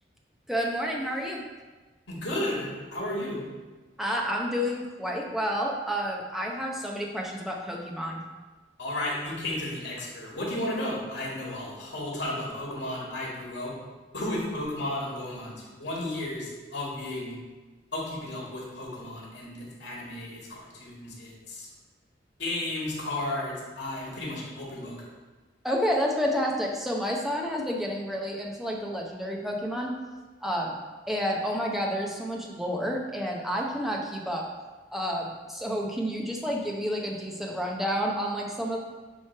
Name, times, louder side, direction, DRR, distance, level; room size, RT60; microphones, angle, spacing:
voice 1, 0.5-1.4 4.0-8.2 25.6-30.0 30.4-30.8 31.1-34.4 34.9-38.8, equal, ahead, -1 dB, 0.7 m, -30 dB
voice 2, 2.1-3.4 8.8-13.7 14.1-17.4 17.9-21.7 22.4-25.0, left 1 dB, 85° left, -4 dB, 2.2 m, -33 dB
8.5 x 3.1 x 4.6 m, 1.3 s
head